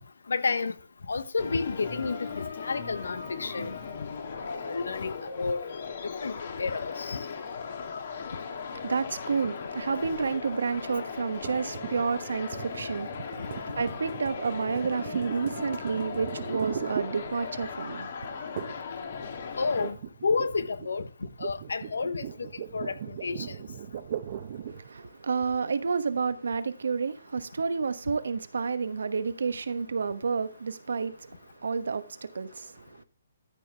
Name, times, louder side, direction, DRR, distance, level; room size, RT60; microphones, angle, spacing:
voice 1, 0.3-0.7 1.1-3.7 4.4-5.6 6.2-7.2 19.6-20.0 20.2-21.1 21.4-22.5 22.7-23.5, left 4 dB, 80° left, 1.1 m, -30 dB
sound 1, 1.4-19.9, left 5 dB, 55° left, 2.4 m, -38 dB
voice 2, 8.5-18.8 24.7-33.0, right 5 dB, 75° right, 1.1 m, -30 dB
sound 2, 11.4-17.8 18.6-18.9 19.2-24.9, right 9 dB, 50° right, 1.0 m, -39 dB
13.0 x 6.4 x 3.4 m
hypercardioid pair, 140°, 0 cm